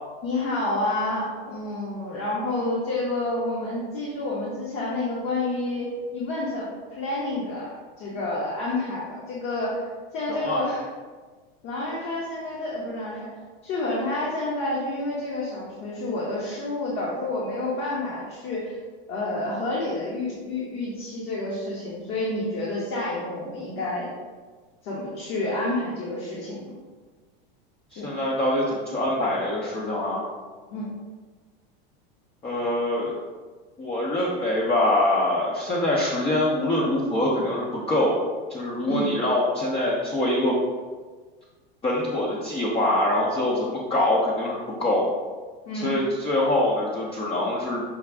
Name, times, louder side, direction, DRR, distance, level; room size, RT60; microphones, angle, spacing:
voice 1, 0.2-9.8 10.1-10.8 11.6-13.3 13.6-18.8 19.1-24.1 24.8-26.7 28.0-28.1 30.7-30.9 38.9-39.1 45.7-45.9, left 2 dB, 50° left, -5 dB, 1.1 m, -29 dB
voice 2, 10.3-10.6 27.9-30.2 32.4-33.1 33.8-38.2 38.5-40.5 41.8-45.1 45.7-47.8, left 1 dB, 20° left, -4 dB, 0.6 m, -24 dB
5.8 x 2.3 x 3.4 m, 1.4 s
supercardioid pair, 125°, 29 cm